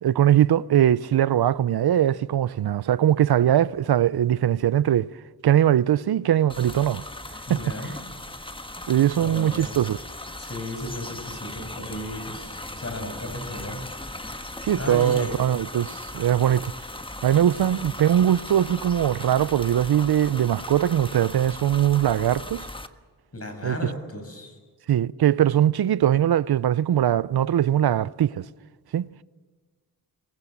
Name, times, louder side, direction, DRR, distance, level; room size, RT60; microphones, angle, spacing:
voice 1, 0.0-5.1 5.4-7.0 7.5-7.6 8.9-10.0 14.6-16.7 17.2-22.7 23.6-23.9 24.9-28.5 28.9-29.1, right 11 dB, 80° right, 0.6 m, -21 dB
sound 1, 6.5-22.9, left 1 dB, 15° left, 1.3 m, -38 dB
voice 2, 7.5-8.0 9.2-9.8 10.4-14.3 14.8-15.3 23.3-24.6, left 1 dB, 40° left, 6.0 m, -35 dB
24.0 x 20.5 x 7.3 m
cardioid pair, 70°, 38 cm